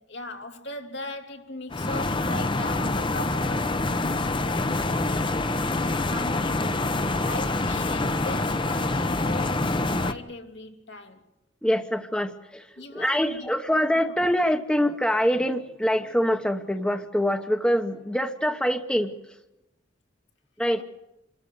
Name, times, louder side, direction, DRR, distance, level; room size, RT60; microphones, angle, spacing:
voice 1, 0.0-5.3 5.9-6.9 7.2-11.3 12.8-13.5 13.9-14.2 20.8-20.9, left 2 dB, 75° left, 3.2 m, -39 dB
sound 1, 1.7-10.1, left 2 dB, 25° left, 0.9 m, -26 dB
voice 2, 11.6-12.7 12.9-19.1 20.6-20.8, equal, 5° left, 1.0 m, -24 dB
27.0 x 13.5 x 9.4 m
head